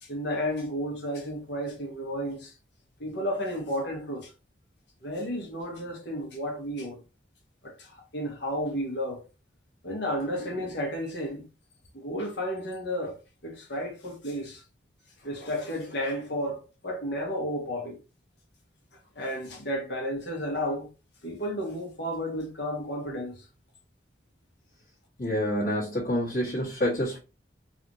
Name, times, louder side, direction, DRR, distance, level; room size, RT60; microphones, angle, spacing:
voice 1, 0.0-2.5 3.0-4.3 5.0-7.0 7.6-9.2 9.8-11.4 11.9-13.2 13.4-14.6 15.2-18.0 18.9-20.9 21.2-23.5, equal, 75° left, 1.5 m, -32 dB
voice 2, 25.2-27.2, equal, 45° left, 1.6 m, -27 dB
4.0 x 2.7 x 3.1 m
head